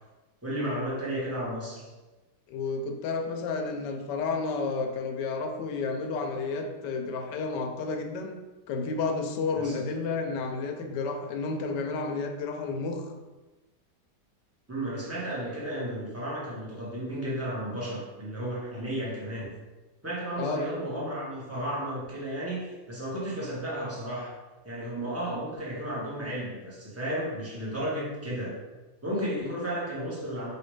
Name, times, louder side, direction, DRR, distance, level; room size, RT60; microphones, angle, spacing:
voice 1, 0.4-1.9 9.5-9.8 14.7-19.5 20.0-24.3 24.6-28.6 29.0-30.5, right 1 dB, 10° right, -6 dB, 0.9 m, -33 dB
voice 2, 2.5-8.4 8.7-13.1 20.4-20.6, left 4 dB, 90° left, 4 dB, 1.3 m, -31 dB
4.9 x 3.2 x 3.2 m, 1.2 s
omnidirectional pair, 1.8 m